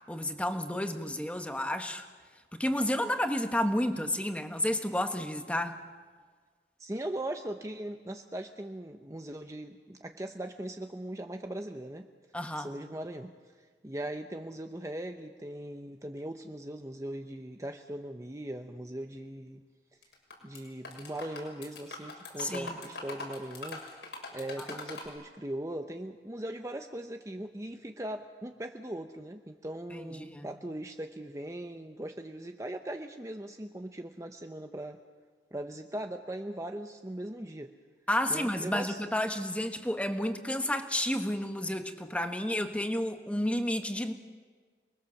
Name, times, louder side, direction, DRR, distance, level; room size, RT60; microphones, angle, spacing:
voice 1, 0.1-2.1 2.5-5.9 12.3-12.7 22.4-22.8 24.6-24.7 29.9-30.5 38.1-44.1, left 1 dB, 10° left, 1.4 m, -31 dB
voice 2, 6.8-12.1 12.5-19.6 20.4-23.8 24.3-35.0 35.5-37.7 38.3-39.0, right 1 dB, 20° right, 0.8 m, -39 dB
sound 1, 20.0-20.6 20.8-25.1, left 3 dB, 85° left, 6.2 m, -42 dB
29.0 x 21.5 x 7.1 m
head